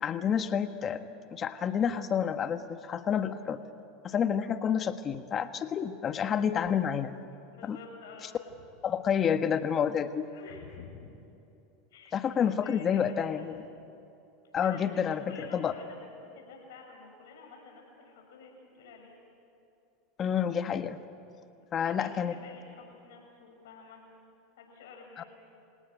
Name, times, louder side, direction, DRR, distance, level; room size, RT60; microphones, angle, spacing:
voice 1, 0.0-1.0 1.3-3.6 4.0-7.1 7.6-7.8 8.8-10.3 12.1-13.6 14.5-15.2 15.5-15.7 20.2-21.0 21.7-22.4 25.2-25.3, left 8 dB, 35° left, 9 dB, 1.4 m, -29 dB
voice 2, 7.5-8.3 10.2-11.1 11.9-13.5 14.6-19.2 21.7-24.0 24.6-25.3, left 4 dB, 80° left, 1 dB, 7.0 m, -50 dB
26.5 x 18.0 x 9.5 m, 2.8 s
supercardioid pair, 110°, 0 cm